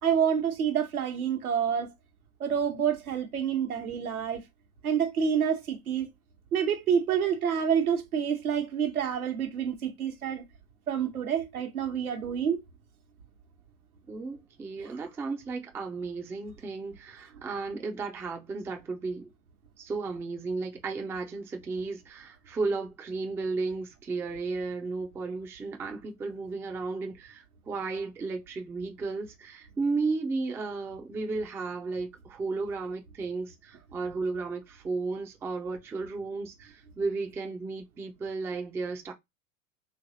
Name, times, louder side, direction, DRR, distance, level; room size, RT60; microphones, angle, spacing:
voice 1, 0.0-1.9 2.4-4.4 4.8-6.1 6.5-10.4 10.9-12.6 14.8-14.9, right 8 dB, 85° right, 1.1 m, -28 dB
voice 2, 14.1-19.3 19.8-39.1, right 3 dB, 5° right, 0.3 m, -34 dB
3.3 x 3.1 x 2.7 m
hypercardioid pair, 95°, 42 cm